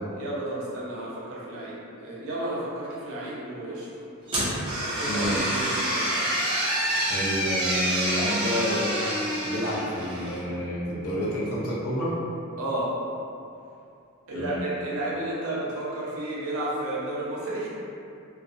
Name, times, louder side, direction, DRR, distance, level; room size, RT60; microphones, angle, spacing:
voice 1, 0.1-4.0 4.4-6.1 12.6-12.9 14.3-17.7, right 1 dB, 70° right, -7 dB, 0.7 m, -32 dB
sound 1, 4.3-10.4, right 1 dB, 25° right, 0.6 m, -27 dB
voice 2, 5.1-5.4 7.1-8.9 9.4-12.1 14.3-14.6, equal, 80° left, -5 dB, 0.5 m, -29 dB
2.5 x 2.0 x 2.4 m, 2.6 s
head